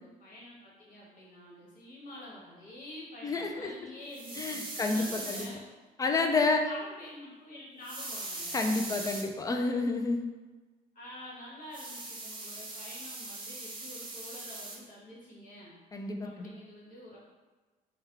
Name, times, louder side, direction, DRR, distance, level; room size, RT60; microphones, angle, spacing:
voice 1, 0.0-5.6 6.7-8.5 10.9-15.8 16.0-17.2, left 1 dB, 50° left, -5 dB, 1.4 m, -48 dB
voice 2, 3.2-3.7 4.4-5.4 6.0-6.7 8.5-10.3 15.9-16.5, left 3 dB, 20° left, 4 dB, 0.4 m, -29 dB
sound 1, 4.1-5.5 7.8-9.2 11.7-14.8, right 2 dB, 30° right, 0.7 m, -40 dB
3.5 x 2.3 x 3.3 m, 1.2 s
cardioid pair, 110°, 17 cm